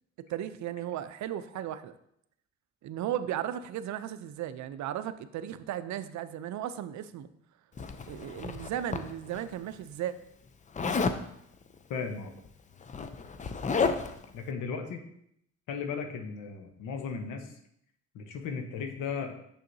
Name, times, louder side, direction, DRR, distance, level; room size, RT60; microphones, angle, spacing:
voice 1, 0.3-1.9 2.8-7.3 8.1-10.2, right 11 dB, 70° right, 13 dB, 0.5 m, -35 dB
Zipper (clothing), 7.8-9.4 10.7-11.2 12.4-12.5 12.8-14.2, left 4 dB, 25° left, 0.4 m, -31 dB
voice 2, 11.9-12.3 14.3-15.0 15.7-17.5 18.1-19.3, left 5 dB, 80° left, 5 dB, 0.9 m, -36 dB
6.6 x 6.3 x 2.7 m, 0.73 s
cardioid pair, 90°, 30 cm